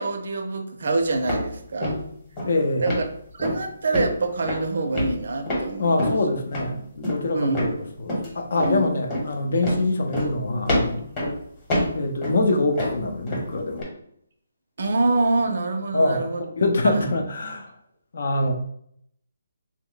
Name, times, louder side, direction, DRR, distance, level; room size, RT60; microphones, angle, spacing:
voice 1, 0.0-2.0 2.8-3.0 3.3-6.0 7.3-7.6 8.5-8.9 14.8-16.4 16.8-17.1, right 3 dB, 65° right, 5 dB, 0.6 m, -25 dB
sound 1, 1.3-1.5 1.8-2.1 2.4-2.5 2.9-3.0 3.4-3.6 3.9-4.1 4.4-4.6 4.9-5.6 6.0-6.2 6.5-6.7 7.0-7.2 7.5-7.7 8.1-8.3 8.6-8.8 9.1-9.3 9.6-9.9 10.1-10.3 10.7-11.4 11.7-12.4 12.8-13.5 13.8-13.9, left 1 dB, 20° left, 1.0 m, -26 dB
voice 2, 2.5-2.9 5.8-7.7 8.0-11.0 11.9-13.9 15.9-16.2 16.5-17.7 18.1-18.5, left 2 dB, 60° left, 4 dB, 0.6 m, -24 dB
3.0 x 2.1 x 3.8 m, 0.69 s
hypercardioid pair, 165°, 0 cm